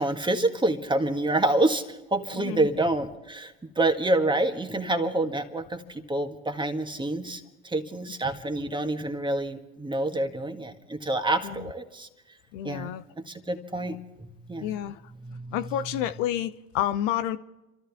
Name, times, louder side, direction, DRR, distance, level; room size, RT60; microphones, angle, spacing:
voice 1, 0.0-12.1 12.6-12.9 13.2-14.8 15.2-16.1, right 2 dB, 10° right, 1.8 m, -28 dB
voice 2, 2.3-2.7 11.4-11.7 12.5-13.0 14.6-15.0 15.5-17.4, left 11 dB, 65° left, 0.8 m, -29 dB
29.5 x 13.5 x 3.6 m
hypercardioid pair, 75°, 41 cm